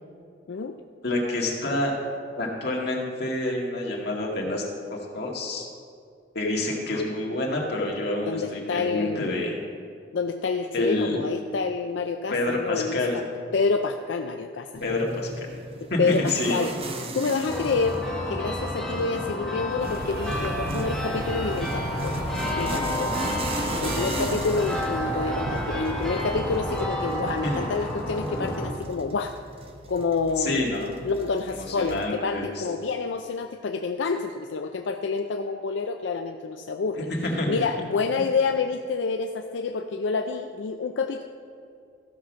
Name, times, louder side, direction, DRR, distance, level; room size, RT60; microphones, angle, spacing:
voice 1, 1.0-1.9 2.4-4.6 4.9-5.7 6.3-9.6 10.7-11.2 12.3-13.2 14.8-15.5 15.9-16.6 27.4-27.6 30.4-30.9 31.5-32.6 37.0-37.7, left 2 dB, 65° left, -2 dB, 2.1 m, -28 dB
voice 2, 8.3-9.2 10.1-13.2 13.5-14.9 15.8-16.7 17.1-18.0 18.3-22.2 22.6-23.1 23.8-29.4 29.9-30.6 31.0-37.1 37.5-41.2, left 4 dB, 90° left, 5 dB, 0.5 m, -28 dB
sound 1, 14.7-32.1, right 1 dB, 35° right, 0.9 m, -37 dB
sound 2, 17.5-28.7, left 1 dB, 5° left, 1.9 m, -30 dB
sound 3, 19.8-26.9, right 3 dB, 55° right, 0.6 m, -36 dB
14.5 x 5.8 x 6.2 m, 2.3 s
head